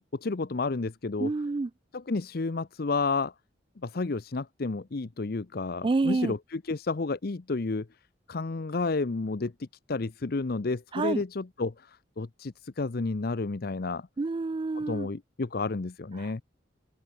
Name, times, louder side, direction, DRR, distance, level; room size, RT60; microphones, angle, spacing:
voice 1, 0.0-1.3 1.9-3.3 3.8-7.9 8.3-14.1 14.7-16.4, left 3 dB, 55° left, 0.7 m, -31 dB
voice 2, 1.2-1.7 5.8-6.3 10.9-11.2 14.2-15.1, right 3 dB, 25° right, 0.3 m, -28 dB
open air
head